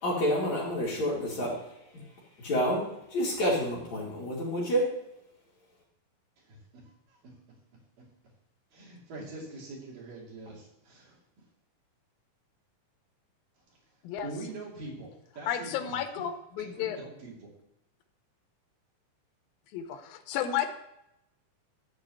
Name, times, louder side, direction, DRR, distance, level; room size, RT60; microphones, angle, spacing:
voice 1, 0.0-1.6 1.9-2.0 2.4-4.9, equal, 55° left, -5 dB, 3.5 m, -29 dB
voice 2, 6.4-6.8 7.1-7.2 8.7-11.2 14.2-15.9 16.6-17.5, right 2 dB, 65° right, -3 dB, 4.4 m, -43 dB
voice 3, 15.5-17.0 19.7-20.7, left 9 dB, 80° left, 7 dB, 2.7 m, -32 dB
13.0 x 4.6 x 7.8 m, 0.83 s
omnidirectional pair, 4.2 m